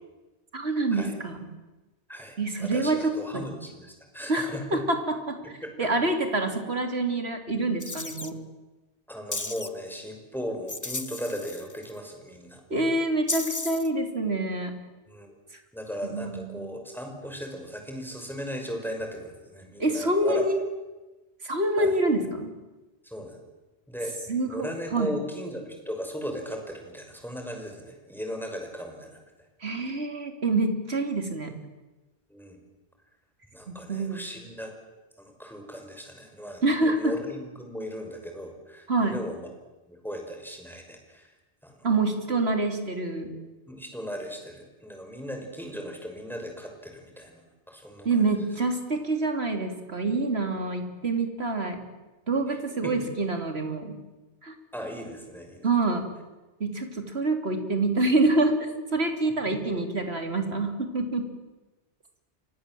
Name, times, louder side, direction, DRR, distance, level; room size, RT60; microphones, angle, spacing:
voice 1, 0.5-1.5 2.4-3.5 4.3-4.5 4.7-5.0 5.3-5.4 5.8-8.4 12.7-14.7 16.1-16.7 19.8-20.6 21.4-22.5 24.3-25.1 29.6-31.5 33.7-34.3 36.6-37.1 38.9-39.2 41.8-43.3 48.1-51.8 52.3-54.0 54.4-54.6 55.6-56.1 56.6-61.3, right 2 dB, 65° right, 5 dB, 3.4 m, -26 dB
voice 2, 2.1-4.8 5.4-5.9 9.1-12.6 15.1-15.3 15.7-20.4 21.8-21.9 23.0-23.4 23.9-24.1 24.5-29.2 32.3-32.6 33.5-34.7 35.2-39.5 39.9-41.3 41.6-41.8 43.7-48.2 52.5-52.6 52.8-53.1 54.7-55.7 59.5-59.6, equal, ahead, 3 dB, 5.9 m, -37 dB
sound 1, 7.8-8.3 9.3-9.7 10.7-11.9 13.3-13.9, left 2 dB, 15° left, 1.0 m, -34 dB
30.0 x 25.0 x 7.8 m, 1.1 s
omnidirectional pair, 1.1 m